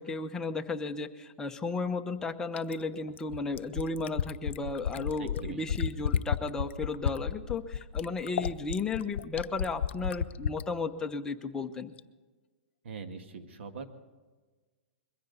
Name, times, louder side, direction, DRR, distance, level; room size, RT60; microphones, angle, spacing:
voice 1, 0.0-11.9, left 3 dB, 10° left, 5 dB, 0.8 m, -34 dB
Fill (with liquid), 2.6-10.7 12.0-12.1, left 8 dB, 75° left, 0.6 m, -32 dB
voice 2, 5.2-5.6 12.8-13.8, right 5 dB, 75° right, 7 dB, 1.9 m, -42 dB
22.0 x 15.5 x 4.1 m, 1.3 s
hypercardioid pair, 155°, 6 cm